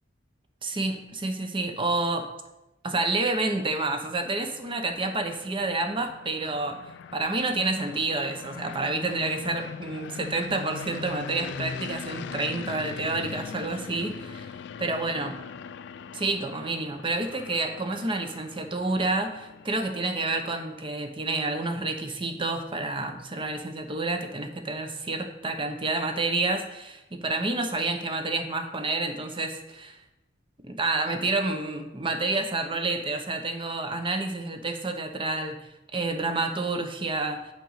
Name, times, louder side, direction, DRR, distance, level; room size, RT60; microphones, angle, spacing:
voice 1, 0.6-2.3 2.8-6.8 7.1-14.5 14.8-15.3 16.1-30.0 30.6-35.6 35.9-37.5, right 2 dB, 30° right, 6 dB, 0.8 m, -29 dB
sound 1, 3.8-20.9, left 6 dB, 65° left, 0.4 m, -41 dB
6.5 x 5.1 x 6.4 m, 0.94 s
head